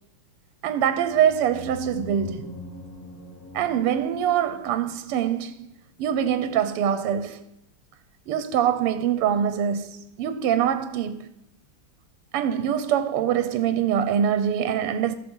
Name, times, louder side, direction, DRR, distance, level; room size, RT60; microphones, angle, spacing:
voice 1, 0.6-2.5 3.5-5.7 6.0-7.4 8.3-11.3 12.3-15.2, right 9 dB, 90° right, 1.7 m, -24 dB
sound 1, 1.0-5.6, left 1 dB, 20° left, 0.5 m, -41 dB
12.5 x 6.0 x 5.4 m
omnidirectional pair, 2.4 m